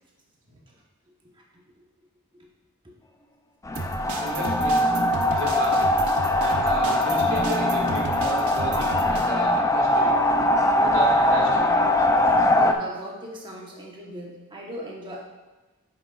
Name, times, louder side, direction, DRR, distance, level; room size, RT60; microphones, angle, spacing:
sound 1, 3.7-12.7, left 1 dB, 15° left, 0.4 m, -21 dB
sound 2, 3.7-9.3, right 3 dB, 90° right, 0.8 m, -34 dB
voice 1, 4.2-4.9 5.3-5.9 6.4-10.1 10.7-11.8, right 3 dB, 65° right, -4 dB, 1.9 m, -33 dB
voice 2, 12.5-15.2, equal, 20° right, -2 dB, 1.2 m, -39 dB
9.4 x 6.3 x 2.4 m, 1.2 s
head